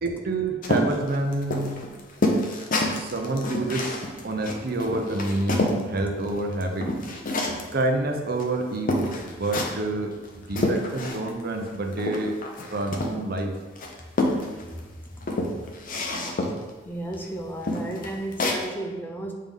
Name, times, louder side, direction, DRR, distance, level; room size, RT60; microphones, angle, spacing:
voice 1, 0.0-1.7 2.9-3.9 4.2-6.9 7.7-12.4 12.7-13.5, right 2 dB, 55° right, 4 dB, 0.7 m, -28 dB
sound 1, 0.6-5.8 6.2-7.7 8.4-8.5 8.9-9.9 10.2-11.4 11.7-13.4 13.8-14.8 15.2-16.7 17.1-17.3 17.6-18.6, left 1 dB, 45° left, 0.7 m, -27 dB
voice 2, 16.8-19.3, right 1 dB, 10° left, 1 dB, 0.5 m, -33 dB
7.6 x 3.6 x 3.6 m, 1.2 s
head